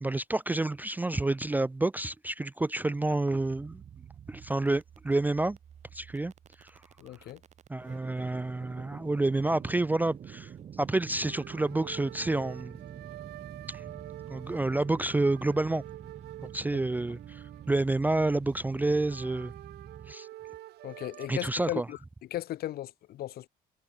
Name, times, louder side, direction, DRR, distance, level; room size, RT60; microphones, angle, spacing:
voice 1, 0.0-3.8 4.3-5.6 5.9-6.3 6.6-6.7 7.7-10.5 10.8-12.8 13.7-13.8 14.3-15.8 16.4-19.5 20.1-20.3 21.3-21.9, right 2 dB, 10° right, 0.4 m, -29 dB
sound 1, 3.3-20.1, right 8 dB, 45° right, 1.2 m, -47 dB
voice 2, 7.0-7.4 16.7-16.8 20.8-22.0 22.3-23.5, left 13 dB, 65° left, 1.7 m, -36 dB
sound 2, 11.2-21.3, right 15 dB, 75° right, 3.6 m, -48 dB
cardioid pair, 110°, 17 cm